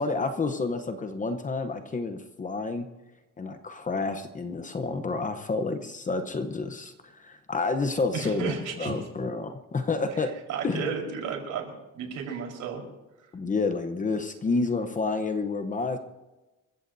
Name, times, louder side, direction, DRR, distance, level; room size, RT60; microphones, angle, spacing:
voice 1, 0.0-2.9 3.4-8.5 8.8-10.3 10.6-10.9 13.3-16.0, left 3 dB, 25° left, 7 dB, 0.9 m, -29 dB
voice 2, 8.1-8.9 10.1-12.8, right 6 dB, 70° right, 1 dB, 4.4 m, -33 dB
28.0 x 15.0 x 2.7 m, 1.1 s
cardioid pair, 175°, 32 cm